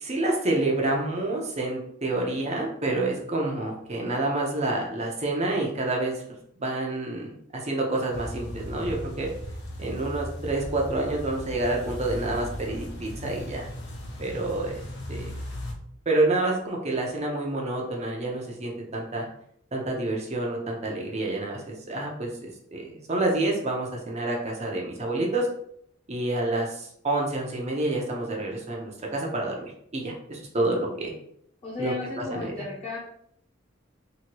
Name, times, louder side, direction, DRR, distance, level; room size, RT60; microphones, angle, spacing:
voice 1, 0.0-6.2 6.6-9.3 9.8-13.7 14.2-14.8 15.1-15.3 16.1-19.3 19.7-25.5 26.1-31.1 31.8-32.6, right 2 dB, 35° right, -1 dB, 0.7 m, -28 dB
sound 1, 8.1-15.7, left 1 dB, 60° left, 0.7 m, -37 dB
voice 2, 31.6-33.0, left 3 dB, 30° left, -8 dB, 1.1 m, -34 dB
2.8 x 2.8 x 3.0 m, 0.68 s
head